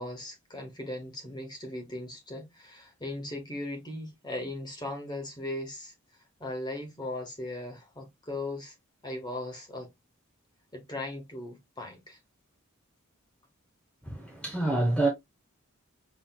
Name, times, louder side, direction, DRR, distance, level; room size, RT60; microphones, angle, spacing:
voice 1, 0.0-5.9 6.4-8.7 9.0-9.9 10.7-12.2, left 1 dB, 20° left, 1.2 m, -38 dB
voice 2, 14.0-15.1, right 2 dB, 5° left, 0.9 m, -27 dB
5.9 x 3.1 x 2.3 m
head